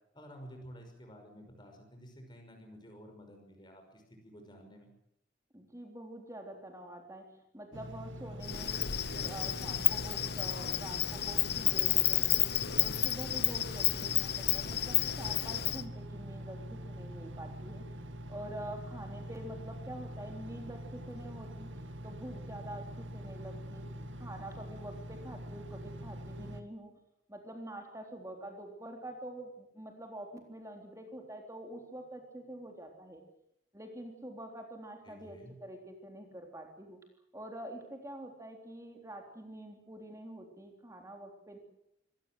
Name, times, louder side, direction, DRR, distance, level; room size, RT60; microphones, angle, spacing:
voice 1, 0.1-4.9 35.0-35.5, equal, 20° left, 3 dB, 5.7 m, -52 dB
voice 2, 5.5-12.5 12.8-17.8 18.3-21.7 22.0-23.9 24.2-26.9 27.3-33.2 33.7-37.0 37.3-41.6, right 1 dB, 15° right, 3 dB, 3.6 m, -46 dB
Engine, 7.7-26.6, equal, 65° right, 2.1 m, -44 dB
Insect, 8.4-15.8, left 14 dB, 50° left, 0.8 m, -31 dB
sound 1, 11.1-14.3, equal, 40° right, 7.7 m, -61 dB
24.5 x 19.0 x 7.9 m, 0.77 s
head